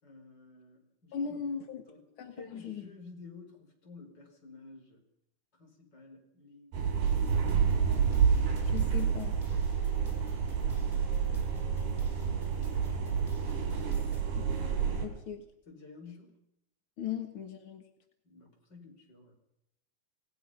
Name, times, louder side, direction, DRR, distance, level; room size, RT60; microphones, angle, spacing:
voice 1, 0.0-1.6 1.9-5.0 5.5-6.8 10.8-13.9 15.7-16.3 18.2-19.3, left 3 dB, 25° left, 3 dB, 5.0 m, -53 dB
voice 2, 1.1-1.8 2.2-2.8 8.6-9.4 14.3-14.5 15.0-15.4 17.0-17.8, left 7 dB, 60° left, 6 dB, 1.4 m, -38 dB
sound 1, 6.7-15.1, right 7 dB, 75° right, 5.7 m, -29 dB
sound 2, 7.0-14.2, left 1 dB, 10° left, 3.7 m, -50 dB
28.0 x 18.5 x 5.7 m, 0.79 s
omnidirectional pair, 4.5 m